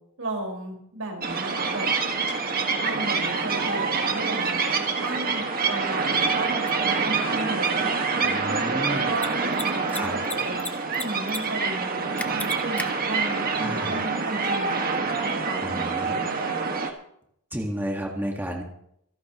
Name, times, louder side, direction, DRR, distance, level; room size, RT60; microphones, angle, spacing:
voice 1, 0.2-1.9 2.8-4.5 5.0-16.7, right 2 dB, 70° right, 1 dB, 5.3 m, -34 dB
sound 1, 1.2-16.9, right 4 dB, 40° right, 1.8 m, -26 dB
Mechanisms, 6.7-6.8 9.1-9.3 9.5-9.6 9.9-10.7 10.9-11.4 11.6-11.7 12.2-12.9, left 2 dB, 5° left, 1.0 m, -32 dB
voice 2, 8.2-9.1 9.9-10.1 13.6-14.0 15.6-16.1 17.5-18.6, equal, 10° right, 0 dB, 1.8 m, -31 dB
27.0 x 11.0 x 3.1 m, 0.72 s
head